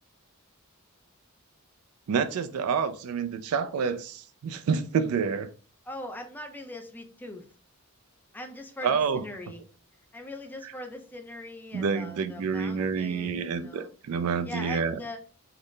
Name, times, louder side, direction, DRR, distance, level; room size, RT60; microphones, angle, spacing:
voice 1, 2.1-5.5 8.8-9.2 11.7-15.0, right 6 dB, 75° right, 0.3 m, -28 dB
voice 2, 5.9-7.5 8.3-9.6 10.1-13.9 14.5-15.2, left 1 dB, 10° left, 0.4 m, -41 dB
3.9 x 2.1 x 3.1 m
head